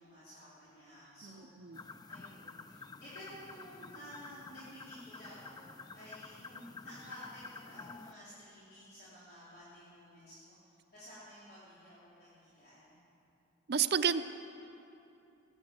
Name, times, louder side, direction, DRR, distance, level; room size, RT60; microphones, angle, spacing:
voice 1, 0.0-10.5 10.9-12.9, equal, 55° left, -11 dB, 3.4 m, -53 dB
voice 2, 1.2-1.8 13.7-14.2, right 7 dB, 60° right, 10 dB, 0.5 m, -31 dB
sound 1, 1.7-8.1, left 4 dB, 20° left, 0.4 m, -50 dB
18.5 x 8.6 x 7.5 m, 2.8 s
head